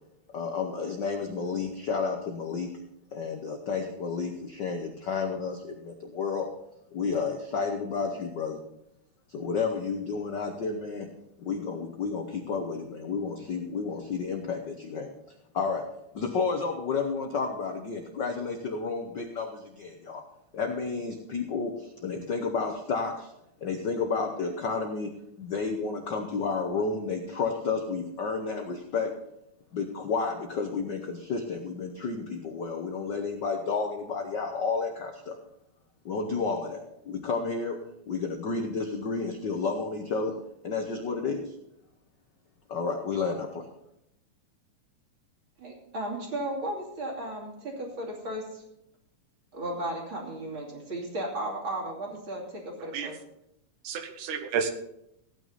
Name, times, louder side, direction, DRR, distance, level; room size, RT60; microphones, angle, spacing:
voice 1, 0.3-2.7 3.1-6.5 6.9-8.6 9.3-11.1 11.4-15.1 15.5-15.9 16.1-20.2 20.5-23.3 23.6-25.1 25.4-29.1 29.7-35.4 36.0-37.8 38.1-40.3 40.6-41.5 42.7-43.7, left 4 dB, 75° left, 4 dB, 0.9 m, -31 dB
voice 2, 45.6-48.6 49.5-53.2, right 1 dB, 40° right, -1 dB, 3.4 m, -35 dB
voice 3, 53.8-54.7, right 6 dB, 90° right, 7 dB, 2.6 m, -31 dB
16.0 x 9.3 x 4.1 m, 0.81 s
omnidirectional pair, 3.4 m